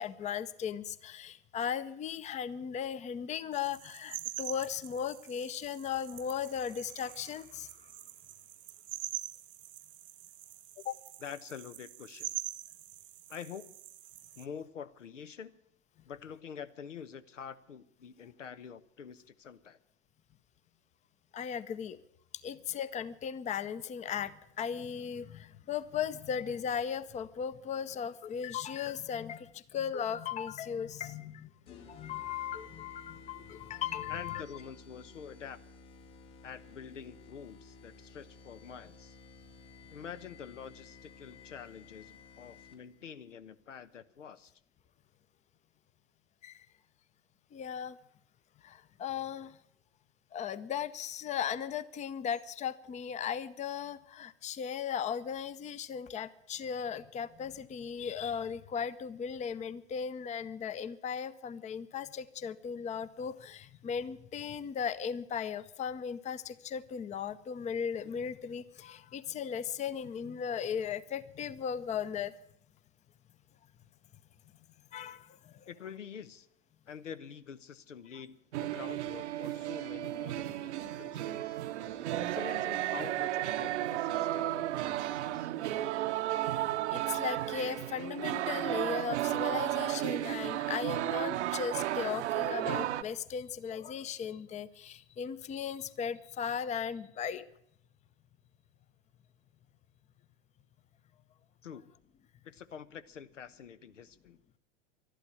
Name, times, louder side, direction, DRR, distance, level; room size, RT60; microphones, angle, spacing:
voice 1, 0.0-7.9 10.8-11.0 21.3-22.0 22.4-34.4 46.4-46.7 47.5-48.0 48.6-49.6 50.3-72.3 74.9-75.7 86.9-97.5, left 7 dB, 20° left, 16 dB, 0.6 m, -37 dB
sound 1, 3.5-14.5, right 14 dB, 35° right, 0.8 m, -45 dB
voice 2, 11.2-12.3 13.3-13.7 14.4-15.5 16.0-19.8 34.1-35.6 36.4-39.2 39.9-44.5 75.7-76.5 76.9-81.6 82.2-85.5 101.6-101.9 102.4-104.4, left 7 dB, 85° left, 13 dB, 0.9 m, -46 dB
sound 2, 31.7-43.0, left 4 dB, 70° left, 2.7 m, -54 dB
sound 3, 78.5-93.0, right 14 dB, 65° right, 0.9 m, -33 dB
12.0 x 11.5 x 9.6 m, 0.75 s
hypercardioid pair, 95°, 36 cm